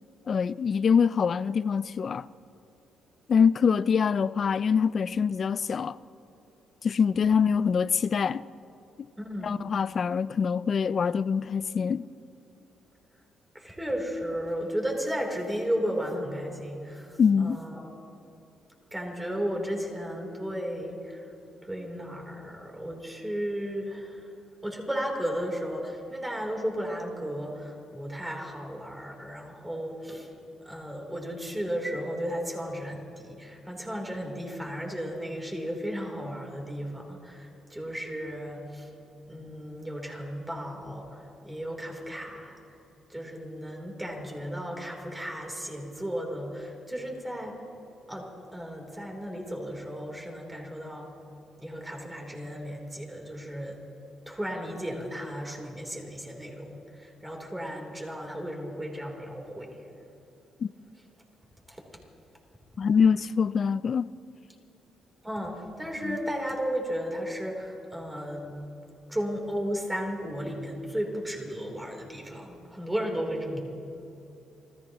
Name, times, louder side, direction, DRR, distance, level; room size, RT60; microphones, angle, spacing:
voice 1, 0.3-2.3 3.3-6.0 6.8-8.4 9.4-12.0 17.2-17.6 60.6-60.7 62.8-64.1 66.1-66.2, left 6 dB, 45° left, 0.3 m, -24 dB
voice 2, 9.2-9.6 13.5-17.9 18.9-21.3 21.6-24.3 24.6-30.3 30.6-38.9 39.3-42.6 43.1-47.6 48.1-51.1 51.6-53.8 54.3-59.8 61.7-61.8 65.2-68.6 69.1-73.6, equal, 10° right, 3.4 m, -34 dB
30.0 x 14.5 x 3.0 m
cardioid pair, 90°, 0 cm